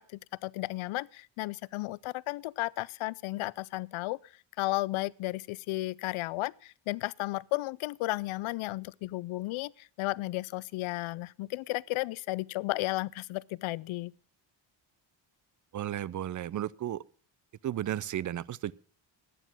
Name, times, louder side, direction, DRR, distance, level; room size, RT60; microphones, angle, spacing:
voice 1, 0.0-4.3 4.6-14.1, left 19 dB, 85° left, 0.5 m, -34 dB
voice 2, 15.7-17.0 17.6-18.7, right 12 dB, 40° right, 0.5 m, -34 dB
11.5 x 9.2 x 6.0 m
cardioid pair, 100°, 47 cm